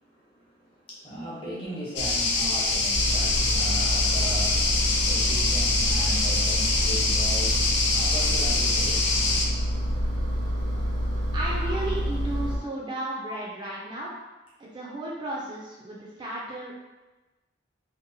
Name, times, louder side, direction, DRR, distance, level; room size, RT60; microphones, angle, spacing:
voice 1, 0.0-9.1 11.6-11.8 12.6-12.7, right 1 dB, 25° left, -7 dB, 0.8 m, -39 dB
sound 1, 2.0-9.5, left 3 dB, 65° left, 0.4 m, -25 dB
Engine, 2.9-12.6, equal, 80° right, 0.6 m, -28 dB
voice 2, 11.3-14.1 14.6-16.7, right 1 dB, 25° right, -5 dB, 0.3 m, -34 dB
2.7 x 2.1 x 2.6 m, 1.1 s
head